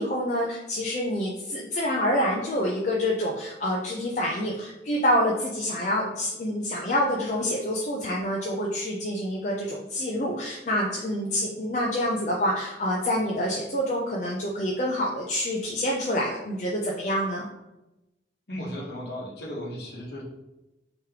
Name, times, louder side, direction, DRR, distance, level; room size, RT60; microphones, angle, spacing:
voice 1, 0.0-17.5, equal, 40° left, -2 dB, 0.4 m, -27 dB
voice 2, 18.5-20.2, equal, 65° left, -3 dB, 1.0 m, -35 dB
3.6 x 2.9 x 3.2 m, 0.96 s
head